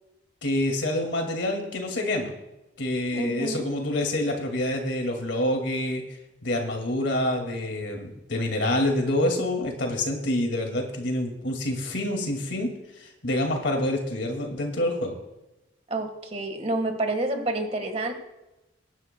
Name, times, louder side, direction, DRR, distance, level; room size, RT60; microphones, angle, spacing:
voice 1, 0.4-2.3 2.8-6.0 6.4-15.2, left 1 dB, 75° left, 2 dB, 2.1 m, -27 dB
voice 2, 3.1-3.7 15.9-18.1, right 2 dB, 35° right, 6 dB, 1.5 m, -29 dB
22.5 x 11.0 x 2.2 m, 0.98 s
head